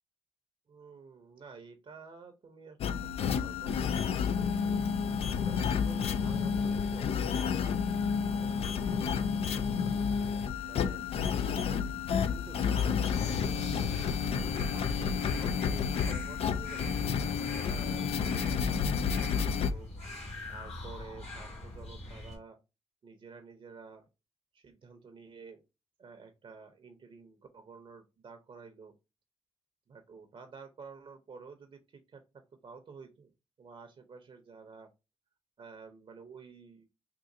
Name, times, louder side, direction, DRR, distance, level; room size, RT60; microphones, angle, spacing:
voice 1, 0.7-4.8 5.4-9.7 10.7-11.0 12.3-13.7 14.0-17.0 17.6-19.9 20.5-22.6 23.0-24.0 24.5-25.6 26.0-28.9 29.9-33.3 33.6-34.9 35.6-36.8, right 5 dB, 55° right, 6 dB, 0.7 m, -51 dB
sound 1, 2.8-19.7, left 6 dB, 65° left, 0.4 m, -30 dB
sound 2, 13.0-22.4, left 1 dB, 85° left, 1.6 m, -43 dB
3.8 x 2.5 x 2.6 m, 0.26 s
cardioid pair, 60°, 11 cm